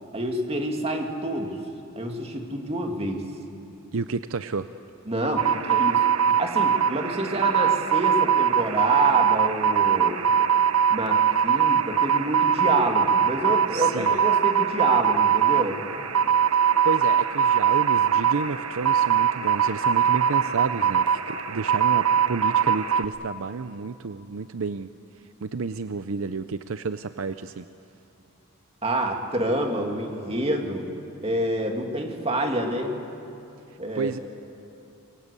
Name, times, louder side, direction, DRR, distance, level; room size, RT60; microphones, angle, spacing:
voice 1, 0.1-1.6 2.0-3.2 5.1-10.2 10.9-15.8 28.8-30.9 31.2-33.0 33.8-34.1, right 1 dB, 25° right, 2 dB, 2.4 m, -27 dB
voice 2, 3.9-4.7 13.7-14.3 16.8-24.9 25.4-27.7 33.9-34.2, right 4 dB, 65° right, 11 dB, 0.6 m, -31 dB
sound 1, 5.4-23.1, right 8 dB, 80° right, 1.1 m, -22 dB
25.0 x 23.0 x 8.3 m, 2.7 s
head